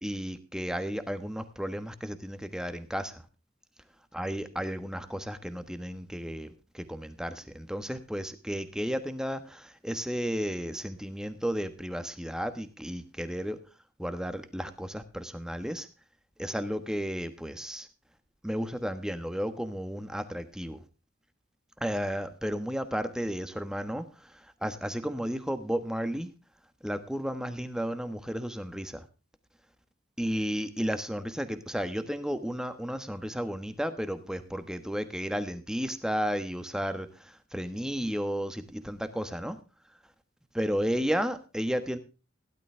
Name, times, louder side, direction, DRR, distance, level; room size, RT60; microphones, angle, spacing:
voice 1, 0.0-3.2 4.1-6.5 6.7-13.6 14.0-15.9 16.4-17.9 18.4-20.8 21.8-26.3 26.8-29.0 30.2-39.6 40.5-42.0, equal, 5° right, 10 dB, 1.2 m, -33 dB
16.5 x 11.5 x 3.3 m, 0.32 s
head